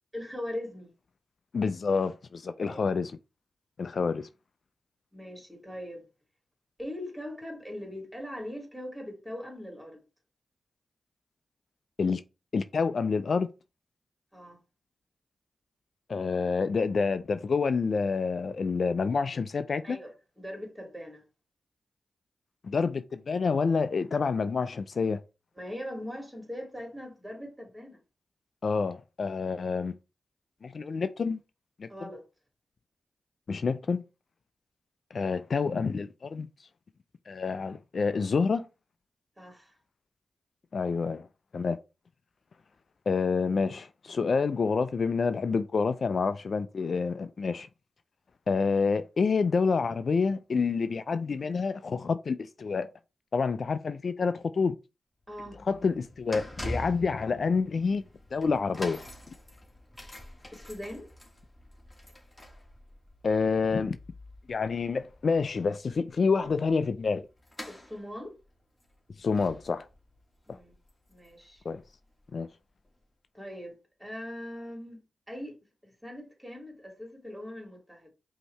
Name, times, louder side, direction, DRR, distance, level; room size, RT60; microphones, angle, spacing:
voice 1, 0.1-0.9 2.7-2.8 3.9-4.0 5.1-6.1 6.8-10.0 14.3-14.6 19.8-21.2 25.5-28.0 31.9-32.2 39.4-39.8 55.3-55.6 60.5-61.1 67.7-68.4 70.5-70.7 71.1-71.6 73.3-75.0 75.3-75.6 75.8-78.1, left 1 dB, 10° right, 2.5 m, -41 dB
voice 2, 1.5-3.1 3.8-4.3 12.0-12.2 12.5-13.5 16.1-20.0 22.6-25.2 28.6-29.9 30.6-31.4 31.8-31.9 33.5-34.0 35.1-36.5 37.3-38.7 40.7-41.3 41.5-41.8 43.1-47.7 48.5-52.9 53.3-54.8 55.7-58.0 58.3-59.0 63.2-64.0 64.5-67.2 69.2-69.9 70.5-70.6 71.7-71.8 72.3-72.5, left 5 dB, 65° left, 0.3 m, -28 dB
sound 1, 55.2-72.2 72.9-73.0, left 1 dB, 20° left, 1.6 m, -45 dB
5.3 x 2.8 x 3.2 m
supercardioid pair, 40°, 0 cm